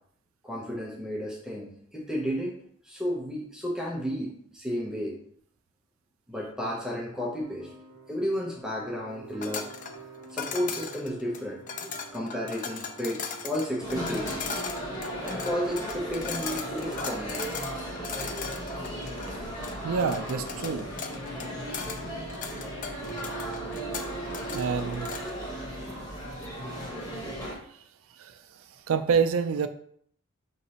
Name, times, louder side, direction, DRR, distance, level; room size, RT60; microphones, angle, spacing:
voice 1, 0.4-2.5 2.8-5.2 6.3-7.7 8.1-9.7 10.3-14.5 15.2-17.5, equal, 5° right, -3 dB, 0.7 m, -32 dB
sound 1, 7.4-26.0, right 4 dB, 75° left, 1.4 m, -46 dB
sound 2, 9.4-25.4, left 6 dB, 40° left, 0.4 m, -38 dB
sound 3, 13.8-27.5, equal, 20° left, 1.3 m, -36 dB
voice 2, 19.8-20.9 24.5-25.1 28.2-28.4 28.9-29.7, right 6 dB, 80° right, 9 dB, 0.4 m, -27 dB
5.0 x 3.2 x 2.8 m, 0.63 s
head